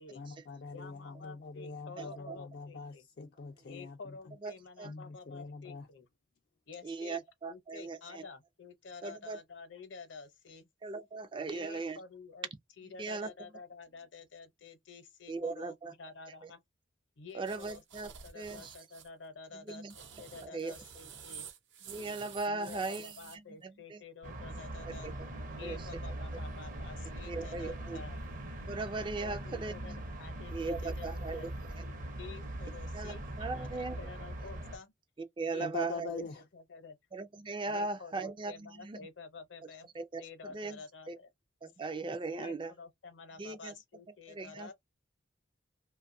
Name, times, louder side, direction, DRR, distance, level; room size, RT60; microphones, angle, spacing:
voice 1, 0.1-4.0 4.8-5.9 35.6-36.4, left 4 dB, 55° left, 0.3 m, -43 dB
voice 2, 0.7-3.1 3.6-6.1 6.7-10.7 11.4-12.5 12.8-16.6 17.2-21.5 22.5-25.2 25.5-28.2 29.2-31.5 31.8-34.9 35.5-36.0 36.4-37.0 37.7-39.9 40.2-41.3 42.3-44.7, left 5 dB, 75° left, 0.8 m, -50 dB
voice 3, 2.0-2.4 4.4-4.5 4.8-4.9 6.8-8.2 9.0-9.4 10.8-12.0 13.0-13.3 15.3-15.9 17.3-18.1 18.4-18.7 19.7-19.9 20.4-20.7 21.9-23.1 23.9-24.0 25.6-25.8 27.3-28.0 28.7-29.7 30.5-31.4 32.9-34.0 35.4-36.2 37.1-38.5 38.8-39.0 40.0-40.2 40.5-40.8 41.1-41.2 41.6-42.7 43.4-43.7 44.4-44.7, right 3 dB, 25° right, 0.3 m, -38 dB
sound 1, 17.4-19.1 19.7-23.4, right 7 dB, 75° right, 0.8 m, -50 dB
sound 2, 24.2-34.8, right 1 dB, 45° right, 0.7 m, -41 dB
2.6 x 2.3 x 2.6 m
head